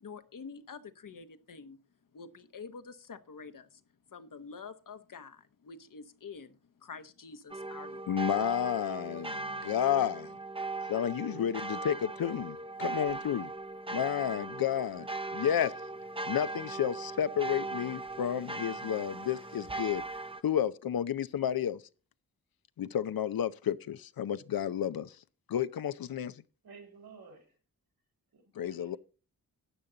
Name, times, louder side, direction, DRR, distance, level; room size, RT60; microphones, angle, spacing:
voice 1, 0.0-1.8 2.1-3.8 4.1-8.1, left 5 dB, 65° left, 1.1 m, -47 dB
sound 1, 7.5-20.4, right 3 dB, 15° right, 0.7 m, -39 dB
voice 2, 8.1-10.3 10.9-13.5 13.9-15.1 15.3-15.7 16.2-20.0 20.4-21.8 22.8-25.1 25.5-26.3 28.6-29.0, left 9 dB, 80° left, 0.7 m, -31 dB
voice 3, 26.6-27.6 28.3-29.0, right 5 dB, 85° right, 4.2 m, -53 dB
12.5 x 8.6 x 3.9 m
cardioid pair, 60°, 35 cm